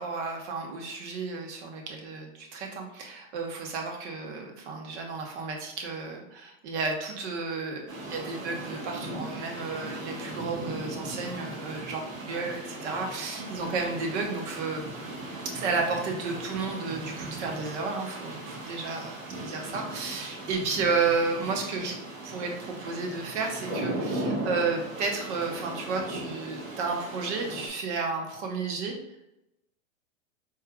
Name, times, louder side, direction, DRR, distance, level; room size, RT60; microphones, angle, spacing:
voice 1, 0.0-14.8 15.5-21.9 22.2-28.9, right 4 dB, 60° right, 2 dB, 1.2 m, -32 dB
sound 1, 7.9-27.7, right 1 dB, 90° right, 1.5 m, -38 dB
4.4 x 3.3 x 2.3 m, 0.86 s
hypercardioid pair, 110°, 39 cm